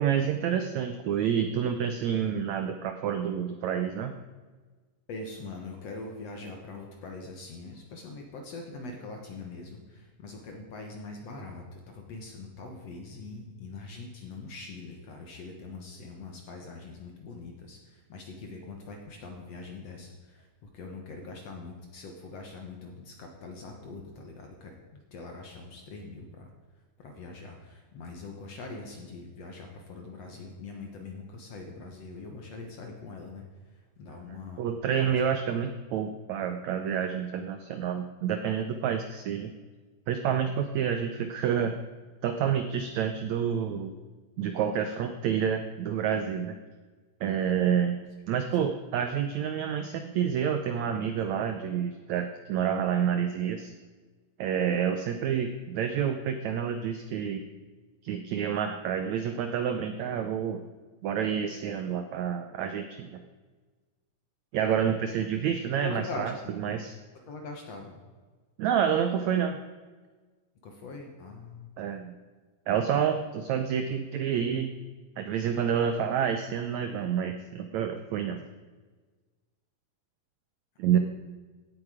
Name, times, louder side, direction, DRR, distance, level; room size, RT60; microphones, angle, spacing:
voice 1, 0.0-4.1 34.3-39.5 40.1-41.7 42.2-43.9 44.4-46.6 47.2-48.0 48.3-53.7 54.4-57.4 58.0-60.6 61.0-63.2 64.5-66.9 68.6-69.6 71.8-72.1 72.7-74.7 75.2-78.4 80.8-81.0, right 8 dB, 90° right, 7 dB, 1.6 m, -28 dB
voice 2, 5.1-26.5 27.0-33.4 33.7-34.6 35.0-35.2 65.8-66.5 67.3-68.0 70.6-71.7, left 3 dB, 55° left, 2 dB, 2.0 m, -43 dB
16.0 x 8.8 x 4.9 m, 1.4 s
omnidirectional pair, 4.3 m